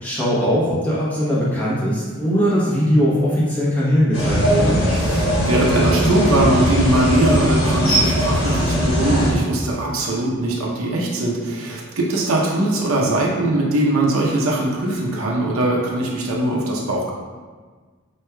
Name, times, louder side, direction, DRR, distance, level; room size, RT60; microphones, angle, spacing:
voice 1, 0.0-4.8, equal, 10° left, -8 dB, 0.8 m, -20 dB
sound 1, 4.1-9.3, equal, 85° left, 1.3 m, -19 dB
voice 2, 4.9-17.1, right 1 dB, 85° right, -3 dB, 0.7 m, -21 dB
4.5 x 3.1 x 2.2 m, 1.4 s
head